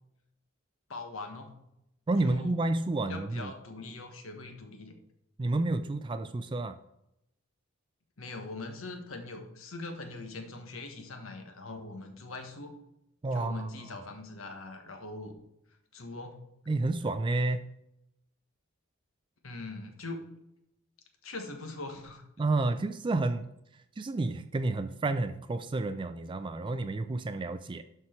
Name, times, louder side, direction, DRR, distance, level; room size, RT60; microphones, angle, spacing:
voice 1, 0.9-1.6 2.2-2.6 3.1-4.9 8.2-12.7 13.3-15.4 15.9-16.4 19.4-20.2 21.2-22.2, left 2 dB, 80° left, 5 dB, 1.4 m, -42 dB
voice 2, 2.1-3.5 5.4-6.8 13.2-14.0 16.7-17.7 22.4-23.5 24.0-27.8, right 2 dB, 25° right, 10 dB, 0.3 m, -30 dB
12.0 x 4.6 x 4.4 m, 0.83 s
head